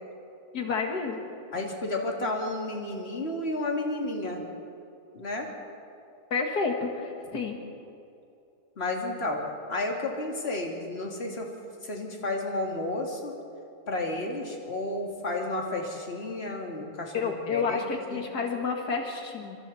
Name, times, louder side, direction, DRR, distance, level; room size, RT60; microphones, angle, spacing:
voice 1, 0.5-1.3 6.3-7.6 17.1-19.6, left 5 dB, 85° left, 2 dB, 2.3 m, -30 dB
voice 2, 1.5-4.4 5.1-5.5 8.8-9.4 9.7-11.5 11.8-13.3 13.9-17.8 18.1-18.2, left 2 dB, 40° left, 0 dB, 2.8 m, -32 dB
27.0 x 26.0 x 4.2 m, 2.7 s
omnidirectional pair, 1.7 m